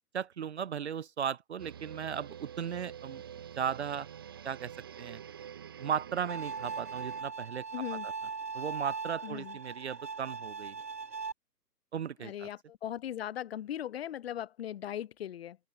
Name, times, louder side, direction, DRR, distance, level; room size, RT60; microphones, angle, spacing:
voice 1, 0.1-3.2 3.6-4.1 4.4-4.7 5.0-5.2 5.8-7.6 8.0-8.1 8.5-10.8 11.9-12.5, right 8 dB, 40° right, 1.5 m, -36 dB
sound 1, 1.6-7.2, right 9 dB, 15° right, 0.7 m, -47 dB
Bowed string instrument, 6.3-11.3, right 5 dB, 75° right, 3.8 m, -39 dB
voice 2, 7.7-8.1 9.2-9.6 12.2-15.6, left 11 dB, 35° left, 5.3 m, -39 dB
open air
figure-of-eight pair, 150°, 49 cm